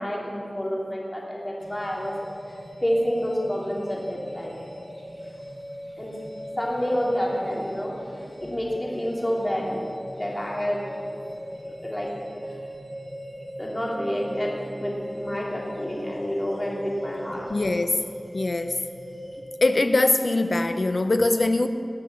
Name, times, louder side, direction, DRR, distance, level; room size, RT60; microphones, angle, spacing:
voice 1, 0.0-2.1 2.8-4.5 6.0-6.1 6.6-7.9 8.4-9.8 10.1-10.9 11.8-12.1 13.6-17.5, equal, 25° left, -4 dB, 3.1 m, -28 dB
sound 1, 1.6-19.4, equal, ahead, 3.3 m, -40 dB
voice 2, 17.5-17.9 18.3-18.7 19.6-21.7, left 2 dB, 65° left, 9 dB, 0.7 m, -22 dB
19.0 x 6.4 x 7.1 m, 2.4 s
wide cardioid pair, 45°, 0 cm